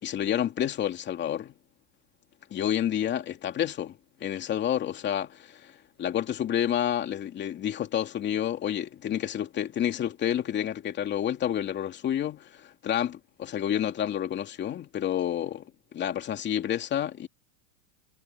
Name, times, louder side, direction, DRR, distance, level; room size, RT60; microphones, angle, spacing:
voice 1, 0.0-1.5 2.5-5.7 6.0-15.6 15.9-17.3, left 10 dB, 25° left, 2.7 m, -29 dB
supercardioid pair, 150°, 45 cm